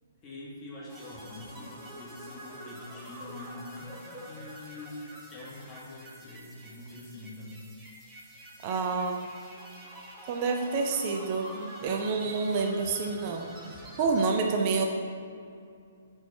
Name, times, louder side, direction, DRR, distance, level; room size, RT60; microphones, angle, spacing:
voice 1, 0.2-7.7, left 2 dB, 25° left, -4 dB, 1.5 m, -45 dB
sound 1, 0.9-14.3, equal, 10° right, 1.2 m, -47 dB
voice 2, 8.6-9.3 10.3-13.5 14.0-14.9, right 4 dB, 40° right, 3 dB, 0.5 m, -28 dB
4.5 x 4.4 x 5.4 m, 2.3 s
figure-of-eight pair, 130°, 0 cm